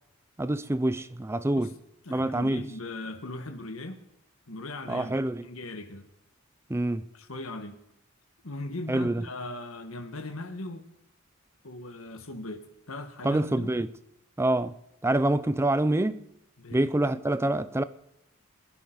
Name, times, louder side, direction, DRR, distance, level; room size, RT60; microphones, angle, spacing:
voice 1, 0.4-1.7 2.1-2.6 4.9-5.4 6.7-7.0 8.9-9.3 13.2-13.9 14.4-14.8 15.0-16.3 16.7-17.8, right 1 dB, 10° right, 0.5 m, -26 dB
voice 2, 2.0-4.0 4.5-6.1 7.1-7.8 8.4-10.9 11.6-13.7 16.6-16.9, left 2 dB, 80° left, 1.5 m, -39 dB
23.0 x 11.0 x 4.0 m
head